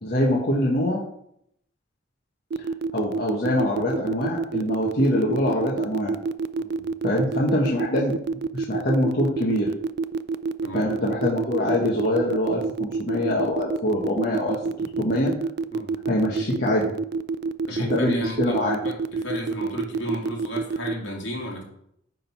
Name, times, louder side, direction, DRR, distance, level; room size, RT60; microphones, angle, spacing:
voice 1, 0.0-1.0 2.9-6.1 7.0-8.2 8.5-9.7 10.7-14.6 15.0-15.3 16.1-16.9 17.9-18.8, left 1 dB, 60° left, -4 dB, 1.4 m, -24 dB
sound 1, 2.5-20.9, right 4 dB, 60° right, 0.3 m, -27 dB
voice 2, 17.7-21.6, left 1 dB, 80° left, -2 dB, 2.4 m, -33 dB
9.5 x 3.9 x 5.9 m, 0.72 s
head